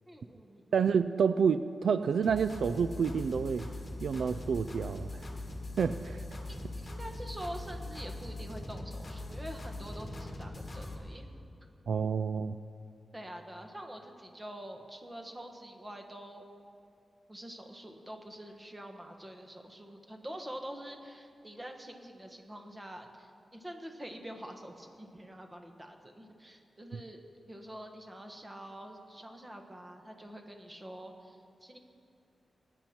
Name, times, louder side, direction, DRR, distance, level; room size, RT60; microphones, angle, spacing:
voice 1, 0.1-0.6 6.8-11.3 13.1-16.4 17.3-27.2 27.5-31.8, right 1 dB, 15° right, 4 dB, 1.3 m, -46 dB
voice 2, 0.7-3.7 4.0-5.2 5.8-6.2 11.9-12.6, right 6 dB, 80° right, 12 dB, 0.3 m, -29 dB
sound 1, 2.2-10.9, left 2 dB, 25° left, 1.6 m, -41 dB
22.0 x 10.0 x 4.4 m, 2.6 s
wide cardioid pair, 135°, 0 cm